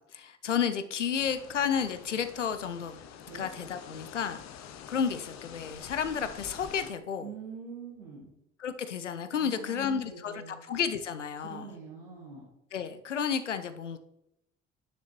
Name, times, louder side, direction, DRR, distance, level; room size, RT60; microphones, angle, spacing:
voice 1, 0.1-3.0 3.3-4.4 4.9-7.3 8.6-11.7 12.7-14.0, left 7 dB, 90° left, 10 dB, 0.6 m, -32 dB
sound 1, 1.1-6.9, left 8 dB, 50° left, 0.8 m, -47 dB
voice 2, 7.2-8.3 9.4-10.6 11.3-12.4, right 5 dB, 80° right, -4 dB, 1.6 m, -44 dB
10.0 x 7.0 x 2.9 m, 0.82 s
figure-of-eight pair, 55°, 36 cm